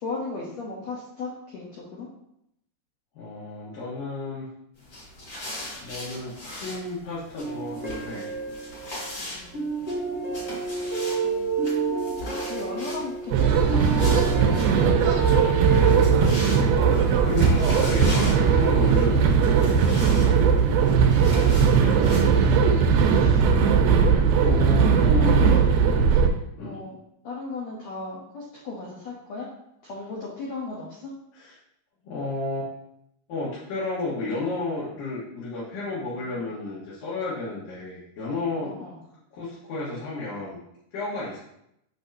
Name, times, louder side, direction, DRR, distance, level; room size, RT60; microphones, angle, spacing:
voice 1, 0.0-2.1 9.2-9.8 11.2-11.7 12.5-14.7 20.6-20.9 25.2-26.3 26.6-27.0 27.2-29.5 29.8-31.1 36.2-36.6 38.6-39.0, left 3 dB, 85° left, -4 dB, 1.5 m, -37 dB
voice 2, 3.1-4.4 5.8-8.3 15.8-16.1 17.1-19.6 21.3-23.4 23.9-25.6 26.6-26.8 31.3-31.5 32.0-32.7 33.3-38.7 39.3-40.6 40.9-41.4, left 3 dB, 65° left, -8 dB, 2.8 m, -32 dB
sound 1, 4.8-22.3, left 1 dB, 40° left, 2.1 m, -40 dB
sound 2, 7.4-9.1 9.5-20.4 20.9-21.9, right 4 dB, 10° right, 0.6 m, -30 dB
sound 3, 13.3-26.3, right 6 dB, 85° right, 2.7 m, -19 dB
6.3 x 6.2 x 2.7 m, 0.78 s
omnidirectional pair, 4.5 m